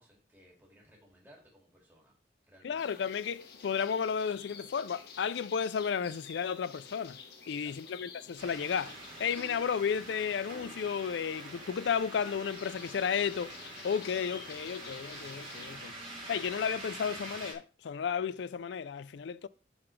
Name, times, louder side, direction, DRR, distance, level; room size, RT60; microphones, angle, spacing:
voice 1, 0.0-2.1 2.4-2.8 7.5-7.9, equal, 10° right, 2.3 m, -61 dB
voice 2, 2.6-7.2 7.5-13.6 13.8-19.5, left 7 dB, 75° left, 0.4 m, -33 dB
sound 1, 2.8-15.8, left 5 dB, 60° left, 1.2 m, -51 dB
sound 2, 8.4-17.5, right 2 dB, 30° right, 2.6 m, -46 dB
11.5 x 4.0 x 3.2 m
head